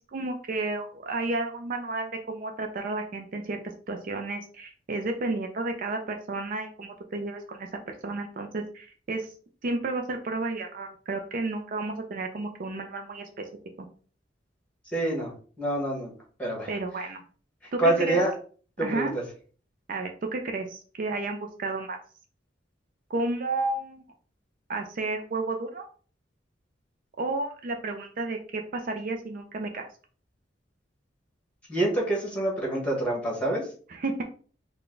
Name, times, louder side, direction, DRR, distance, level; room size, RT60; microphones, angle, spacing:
voice 1, 0.0-3.6 3.9-9.3 9.6-13.4 13.8-13.9 16.7-17.2 17.7-18.2 18.8-19.1 19.9-22.0 23.1-24.0 24.7-25.9 27.2-29.9 33.9-34.2, right 2 dB, 50° right, 4 dB, 0.4 m, -32 dB
voice 2, 14.9-15.3 15.6-16.1 16.4-16.7 17.8-18.3 18.8-19.1 31.7-33.6, right 1 dB, 5° left, -2 dB, 1.4 m, -26 dB
3.9 x 2.2 x 3.7 m, 0.42 s
head